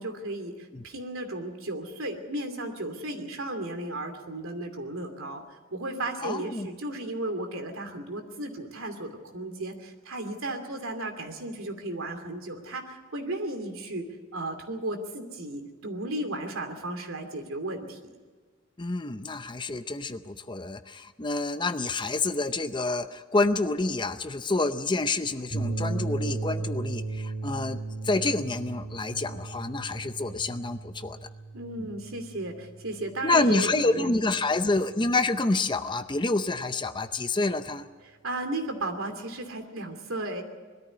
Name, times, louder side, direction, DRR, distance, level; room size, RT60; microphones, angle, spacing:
voice 1, 0.0-5.4 5.7-14.1 14.3-18.0 31.5-34.1 38.0-40.4, right 1 dB, 75° right, 5 dB, 2.7 m, -34 dB
voice 2, 6.2-6.7 18.8-27.8 28.0-31.2 33.2-37.9, left 2 dB, 20° left, 11 dB, 0.6 m, -28 dB
sound 1, 25.5-34.0, right 3 dB, 20° right, 7.8 m, -36 dB
21.0 x 13.5 x 9.7 m, 1.4 s
head